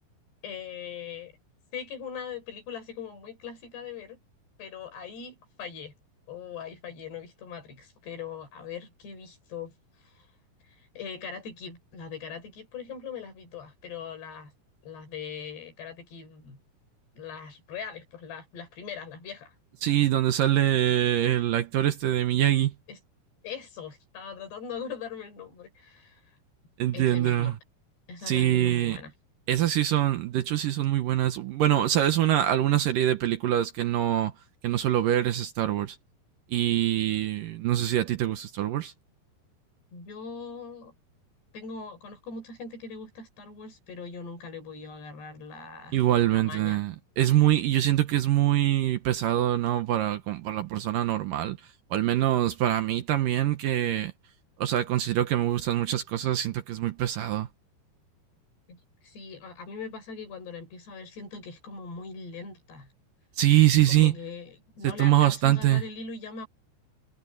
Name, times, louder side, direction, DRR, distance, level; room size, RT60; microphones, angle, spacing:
voice 1, 0.4-1.3 1.7-4.2 4.6-5.9 6.3-9.7 10.0-10.3 10.6-14.5 14.8-16.6 17.2-19.5 22.9-23.0 23.4-26.2 26.9-27.6 28.1-29.1 39.9-40.9 41.5-46.0 46.3-46.8 58.7-58.8 59.0-62.9 63.9-66.5, left 6 dB, 80° left, 7.8 m, -41 dB
voice 2, 19.8-22.7 26.8-27.5 28.3-29.0 29.5-34.3 34.6-36.0 36.5-38.9 45.9-51.6 51.9-54.1 54.6-57.5 63.4-64.1 64.8-65.8, right 12 dB, 70° right, 2.3 m, -24 dB
omnidirectional pair, 4.7 m